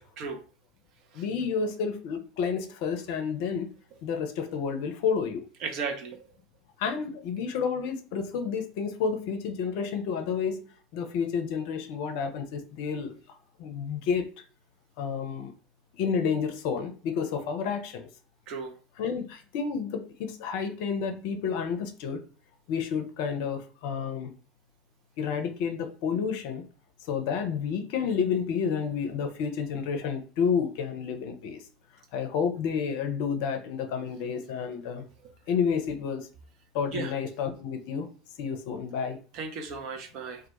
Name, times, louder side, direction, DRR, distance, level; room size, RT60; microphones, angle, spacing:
voice 1, 1.1-3.7 4.0-5.4 6.8-10.7 10.9-13.1 13.6-14.2 15.0-15.5 16.0-18.1 19.0-22.2 22.7-24.3 25.2-26.7 27.1-31.6 32.1-35.0 35.5-36.3 36.7-38.1 38.4-39.2, left 6 dB, 60° left, 7 dB, 0.5 m, -30 dB
voice 2, 5.6-6.2 18.5-18.7 36.9-37.1 39.3-40.4, right 5 dB, 55° right, 5 dB, 0.6 m, -34 dB
2.2 x 2.1 x 2.9 m, 0.38 s
figure-of-eight pair, 70°, 0 cm